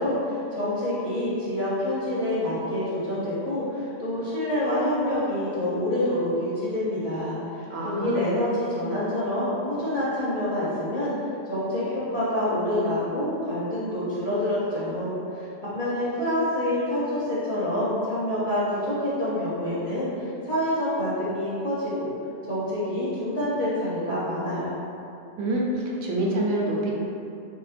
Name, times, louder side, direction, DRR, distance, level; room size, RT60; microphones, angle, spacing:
voice 1, 0.0-7.4 7.8-11.1 11.5-15.4 15.7-22.1 22.5-24.7, left 1 dB, 35° left, -11 dB, 0.6 m, -27 dB
voice 2, 7.7-8.2 25.4-26.9, right 1 dB, 80° right, -3 dB, 0.9 m, -26 dB
3.2 x 2.9 x 2.4 m, 2.6 s
omnidirectional pair, 1.3 m